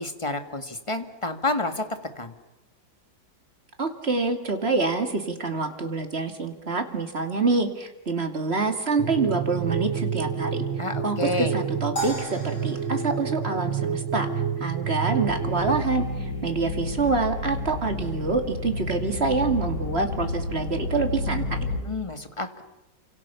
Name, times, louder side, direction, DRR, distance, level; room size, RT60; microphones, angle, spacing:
voice 1, 0.0-2.3 10.8-11.5 21.8-22.6, left 2 dB, 15° left, 8 dB, 1.8 m, -29 dB
voice 2, 3.8-10.6 11.0-14.3 14.6-21.6, right 3 dB, 35° right, 6 dB, 2.8 m, -26 dB
sound 1, 9.0-15.8, right 7 dB, 90° right, 2.0 m, -28 dB
sound 2, 12.0-14.3, right 2 dB, 65° left, 7.3 m, -36 dB
sound 3, 15.3-21.8, left 2 dB, 50° left, 4.7 m, -31 dB
30.0 x 26.5 x 7.1 m, 0.99 s
omnidirectional pair, 2.0 m